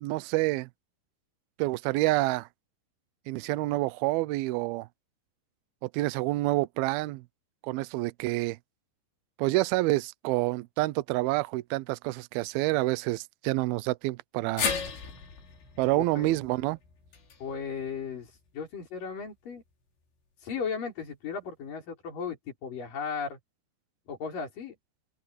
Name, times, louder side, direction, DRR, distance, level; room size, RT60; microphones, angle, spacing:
voice 1, 0.0-0.7 1.6-2.5 3.3-4.9 5.8-7.2 7.6-8.6 9.4-14.7 15.8-16.8, right 19 dB, 90° right, 2.2 m, -28 dB
sound 1, 14.6-18.8 19.2-19.3 20.5-20.6, left 6 dB, 85° left, 7.0 m, -36 dB
voice 2, 15.9-16.4 17.4-19.6 20.4-23.4 24.1-24.7, left 6 dB, 50° left, 6.4 m, -36 dB
open air
omnidirectional pair, 5.0 m